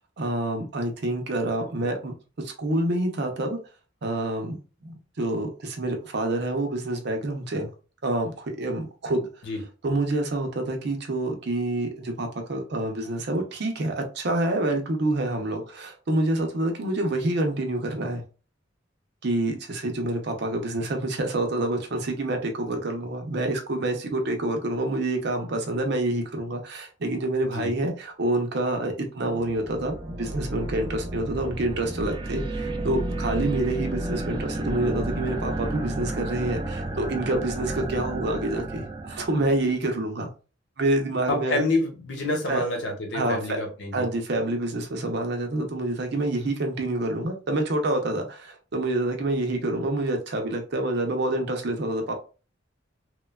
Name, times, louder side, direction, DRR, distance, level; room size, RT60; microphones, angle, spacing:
voice 1, 0.2-3.6 4.0-4.6 4.8-7.7 8.0-9.3 9.8-18.2 19.2-40.3 40.8-41.6 42.5-42.6 43.1-43.4 43.9-52.1, right 2 dB, 65° right, 4 dB, 0.6 m, -27 dB
sound 1, 29.2-39.8, right 1 dB, 25° right, 0.3 m, -32 dB
voice 2, 41.3-44.1, left 2 dB, 75° left, 2 dB, 0.9 m, -27 dB
3.1 x 2.1 x 2.2 m, 0.35 s
head